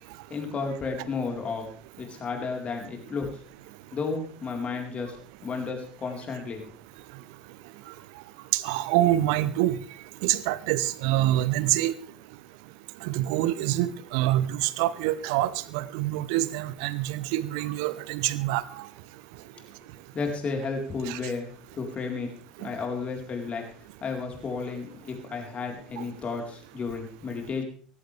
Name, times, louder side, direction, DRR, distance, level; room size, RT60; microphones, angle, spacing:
voice 1, 0.3-1.7 2.0-3.3 3.9-5.2 5.4-6.7 20.1-22.3 22.6-23.6 24.0-27.6, left 4 dB, 30° left, 2 dB, 4.2 m, -32 dB
voice 2, 8.5-9.8 10.2-11.9 13.0-18.6 21.1-21.2 26.0-26.1, right 14 dB, 60° right, 18 dB, 0.9 m, -26 dB
18.0 x 15.5 x 3.4 m, 0.40 s
figure-of-eight pair, 65°, 4 cm